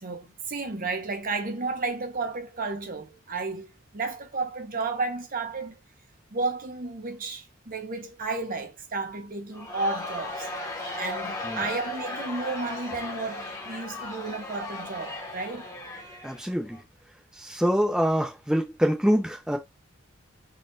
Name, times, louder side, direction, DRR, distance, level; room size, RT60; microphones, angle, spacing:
voice 1, 0.0-5.8 6.3-10.5 11.0-15.7, right 3 dB, 45° right, 0.8 m, -32 dB
Crowd, 9.5-16.8, left 2 dB, 15° left, 1.1 m, -36 dB
voice 2, 16.2-16.8 17.4-19.6, equal, 5° right, 0.6 m, -25 dB
4.0 x 2.4 x 3.7 m
head